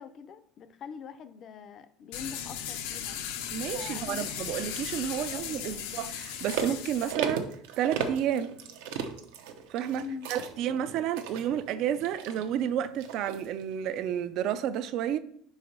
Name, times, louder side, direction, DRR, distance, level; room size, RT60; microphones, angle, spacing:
voice 1, 0.0-3.2 3.7-4.3 5.3-5.8 10.0-10.3, left 6 dB, 30° left, 0.5 m, -43 dB
sound 1, 2.1-7.1, left 9 dB, 85° left, 0.8 m, -37 dB
voice 2, 3.5-7.5 7.8-8.5 9.7-15.2, right 10 dB, 45° right, 0.4 m, -31 dB
sound 2, 6.3-13.6 14.1-14.2, right 6 dB, 80° right, 0.8 m, -37 dB
5.1 x 4.7 x 5.4 m
cardioid pair, 170°, 0 cm